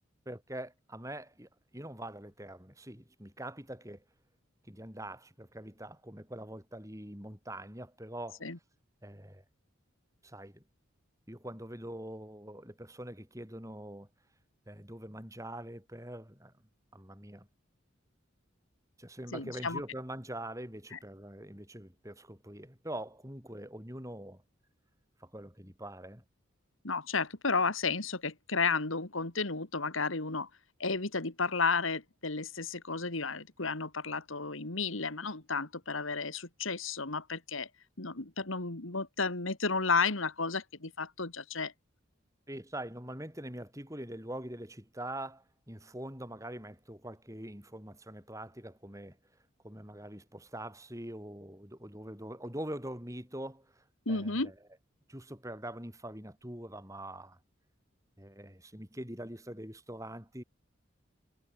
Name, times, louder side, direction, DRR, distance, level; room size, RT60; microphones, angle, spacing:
voice 1, 0.3-4.0 4.6-8.4 9.0-9.4 10.2-10.6 11.3-14.1 14.7-16.5 16.9-17.5 19.0-24.4 25.2-26.2 42.5-49.2 49.6-54.6 55.1-57.4 58.2-60.4, right 1 dB, 15° right, 7.1 m, -44 dB
voice 2, 19.3-19.8 20.9-21.0 26.8-30.5 30.8-37.7 38.0-41.7 54.1-54.5, left 4 dB, 85° left, 2.6 m, -32 dB
head